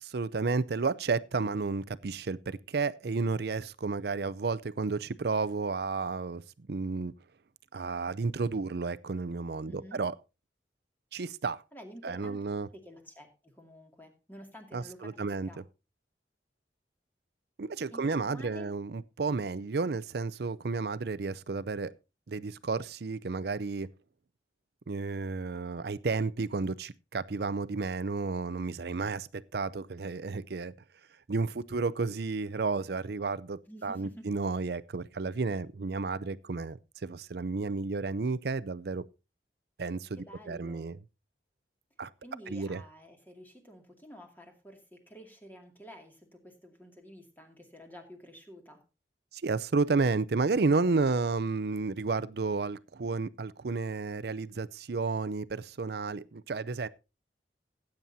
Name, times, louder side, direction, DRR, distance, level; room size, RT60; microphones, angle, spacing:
voice 1, 0.0-7.1 7.7-10.1 11.1-11.6 12.0-12.7 14.7-15.5 17.6-21.9 22.3-23.9 24.9-30.7 31.3-39.0 39.8-41.0 42.0-42.1 42.5-42.8 49.3-56.9, right 4 dB, 60° right, 0.5 m, -32 dB
voice 2, 9.7-10.0 11.7-12.4 12.7-15.6 17.9-18.7 33.7-34.3 40.2-40.9 42.2-48.8, equal, 10° left, 2.3 m, -50 dB
18.0 x 8.9 x 2.7 m
head